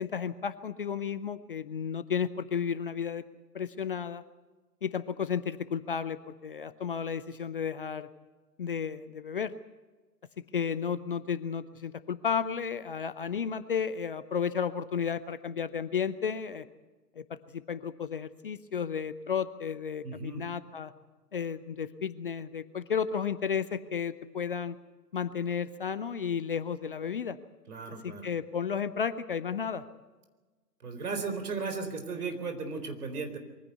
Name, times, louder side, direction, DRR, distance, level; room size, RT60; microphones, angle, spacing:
voice 1, 0.0-3.2 3.5-4.2 4.8-8.1 8.6-9.5 10.4-16.6 17.2-20.9 21.3-24.7 25.1-27.4 28.0-29.8, left 7 dB, 35° left, 14 dB, 0.6 m, -33 dB
voice 2, 20.0-20.4 27.7-28.3 30.8-33.4, right 4 dB, 60° right, 7 dB, 4.2 m, -35 dB
23.0 x 15.5 x 8.1 m, 1.3 s
figure-of-eight pair, 125°, 50 cm